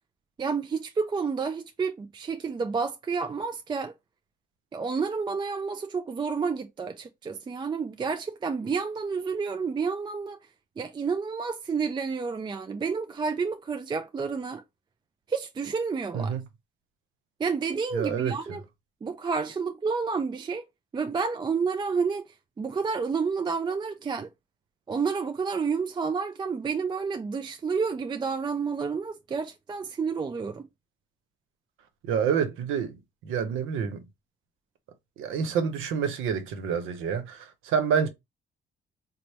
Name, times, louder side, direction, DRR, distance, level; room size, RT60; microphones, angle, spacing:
voice 1, 0.4-3.9 4.7-10.4 10.8-14.6 15.3-16.3 17.4-18.6 19.0-20.6 20.9-22.2 22.6-24.3 24.9-30.6, right 5 dB, 25° right, 0.4 m, -30 dB
voice 2, 17.9-18.3 32.0-32.9 33.2-34.0 35.2-38.1, right 7 dB, 90° right, 0.7 m, -27 dB
3.2 x 2.0 x 4.1 m
cardioid pair, 90°, 20 cm